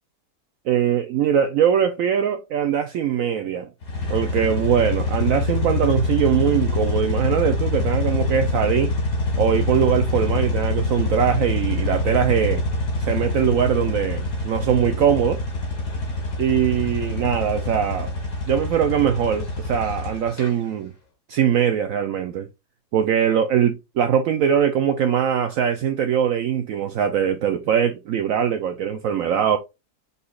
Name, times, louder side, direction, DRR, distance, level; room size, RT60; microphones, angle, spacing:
voice 1, 0.7-3.7 4.1-8.9 9.4-12.6 13.0-15.4 16.4-18.1 18.4-20.9 21.3-22.5 22.9-29.6, right 8 dB, 70° right, 0.9 m, -21 dB
sound 1, 3.8-20.5, left 2 dB, 85° left, 2.4 m, -25 dB
5.3 x 4.2 x 2.3 m
omnidirectional pair, 1.7 m